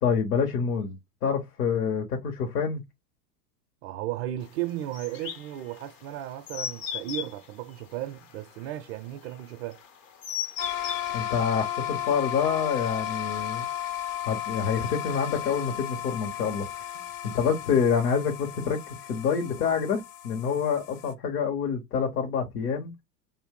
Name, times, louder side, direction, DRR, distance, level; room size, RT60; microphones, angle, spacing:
voice 1, 0.0-1.0 1.2-2.8 11.1-13.7 14.3-16.8 17.2-18.8 19.1-22.9, left 6 dB, 65° left, 1.2 m, -27 dB
voice 2, 3.8-9.8 16.9-17.1, right 13 dB, 45° right, 0.4 m, -35 dB
sound 1, 4.9-11.2, left 8 dB, 25° left, 0.4 m, -37 dB
sound 2, 10.6-21.1, left 11 dB, 50° left, 0.8 m, -34 dB
2.6 x 2.5 x 3.6 m
hypercardioid pair, 105°, 49 cm